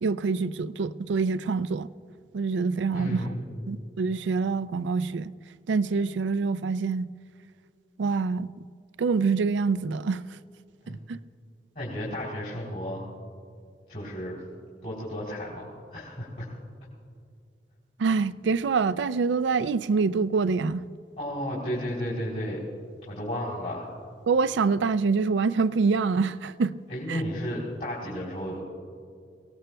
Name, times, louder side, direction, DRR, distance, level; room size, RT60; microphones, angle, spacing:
voice 1, 0.0-1.9 2.3-3.3 3.7-5.3 5.7-7.1 8.0-8.5 9.0-10.2 10.9-11.2 18.0-20.9 24.3-26.7 27.1-27.2, right 4 dB, 90° right, 0.4 m, -25 dB
voice 2, 2.9-3.6 10.8-11.0 11.7-13.1 13.9-14.4 14.8-16.5 21.2-22.6 23.0-23.9 26.9-28.6, equal, 50° left, 3.5 m, -33 dB
24.0 x 18.0 x 2.3 m
head